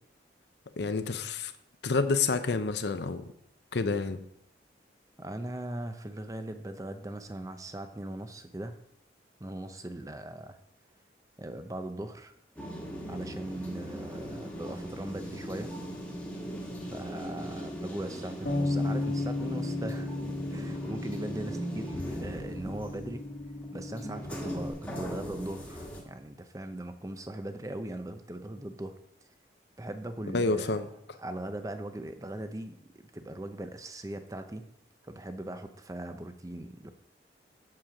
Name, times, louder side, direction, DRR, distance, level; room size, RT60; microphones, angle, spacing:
voice 1, 0.8-1.5 1.8-3.3 3.7-4.2 30.3-30.9, left 4 dB, 70° left, 9 dB, 0.7 m, -28 dB
voice 2, 5.2-8.8 9.4-10.6 11.4-12.3 13.1-15.7 16.9-20.1 20.5-23.3 23.7-29.0 29.8-30.7 31.2-34.6 35.0-36.9, right 1 dB, 20° right, 8 dB, 0.6 m, -39 dB
sound 1, 12.6-26.0, equal, 10° left, 1.4 m, -39 dB
Bass guitar, 18.5-24.7, left 2 dB, 55° left, 1.3 m, -35 dB
7.7 x 7.4 x 4.9 m, 0.73 s
head